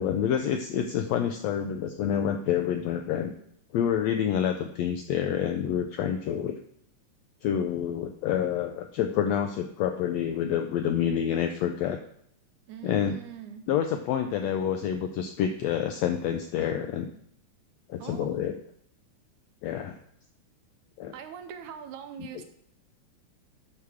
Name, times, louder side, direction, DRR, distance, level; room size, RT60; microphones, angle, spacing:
voice 1, 0.0-3.3 3.7-6.6 7.4-12.0 12.8-13.1 13.7-17.1 17.9-18.6 19.6-20.0 21.0-21.1, left 9 dB, 85° left, 6 dB, 1.5 m, -28 dB
voice 2, 12.7-13.7 18.0-18.4 21.1-22.4, right 7 dB, 75° right, 8 dB, 2.1 m, -42 dB
11.0 x 6.1 x 3.5 m, 0.68 s
omnidirectional pair, 3.6 m